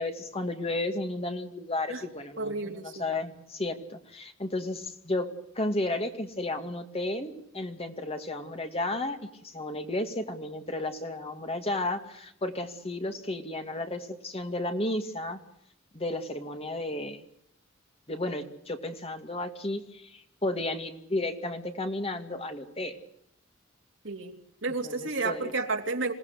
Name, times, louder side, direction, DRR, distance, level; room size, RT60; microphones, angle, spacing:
voice 1, 0.0-15.4 15.9-17.2 18.1-23.0 24.8-25.5, left 2 dB, 30° left, 5 dB, 2.4 m, -33 dB
voice 2, 2.4-3.0 24.0-24.4 24.6-26.1, right 3 dB, 65° right, 3 dB, 3.2 m, -31 dB
27.5 x 18.0 x 8.1 m, 0.73 s
head